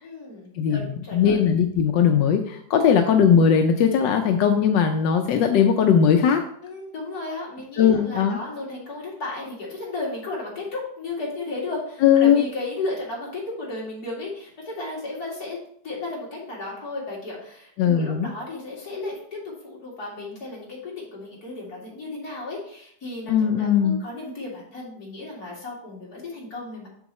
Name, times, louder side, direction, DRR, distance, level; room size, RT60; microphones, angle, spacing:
voice 1, 0.0-1.4 6.6-15.6 15.8-26.9, left 2 dB, 60° left, -4 dB, 3.0 m, -34 dB
voice 2, 0.6-6.4 7.8-8.4 12.0-12.4 17.8-18.3 23.3-24.0, left 7 dB, 90° left, 5 dB, 1.3 m, -19 dB
7.3 x 6.8 x 3.1 m, 0.64 s
omnidirectional pair, 1.9 m